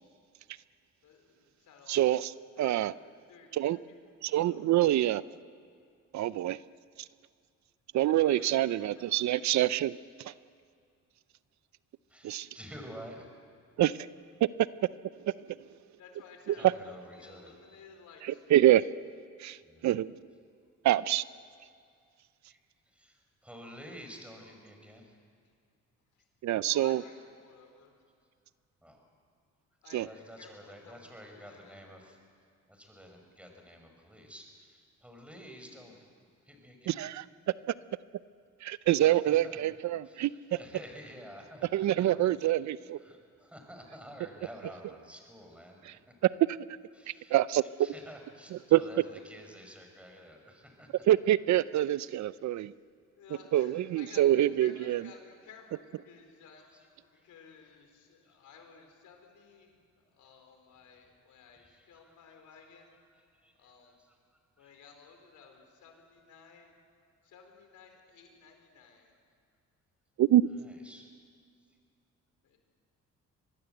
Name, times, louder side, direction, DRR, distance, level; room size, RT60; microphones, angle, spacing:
voice 1, 1.0-2.0 2.6-2.9 3.3-3.8 4.3-4.8 8.0-9.3 16.0-18.4 26.6-27.1 27.4-27.9 29.8-30.1 30.4-31.1 31.3-31.8 53.2-59.7 60.2-62.9 63.6-63.9 64.6-66.7 67.2-69.1 72.4-72.6, left 6 dB, 75° left, 4 dB, 4.3 m, -55 dB
voice 2, 1.9-2.9 3.5-3.8 4.2-5.2 6.1-6.6 7.9-10.3 12.2-12.5 13.8-14.1 15.3-15.4 16.5-16.7 18.2-18.9 19.4-19.6 19.8-20.1 20.8-21.2 26.4-27.0 29.9-30.1 36.9-37.3 38.6-40.3 41.7-43.0 45.9-46.0 46.2-46.6 47.1-47.9 48.7-48.8 51.1-52.7 53.5-55.1 70.2-70.5, right 13 dB, 65° right, 18 dB, 0.6 m, -26 dB
voice 3, 12.1-13.3 16.5-17.8 19.6-19.9 22.5-22.6 22.9-25.1 28.8-29.0 29.9-32.2 32.7-36.0 36.4-37.0 39.1-39.6 40.0-42.1 43.0-46.0 46.9-51.0 52.0-52.1 54.9-55.0 56.7-56.9 57.1-57.3 61.5-62.5 62.9-64.2 64.6-64.8 70.6-71.1, equal, 5° right, 3 dB, 5.6 m, -50 dB
24.5 x 20.0 x 8.0 m, 2.2 s
cardioid pair, 90°, 30 cm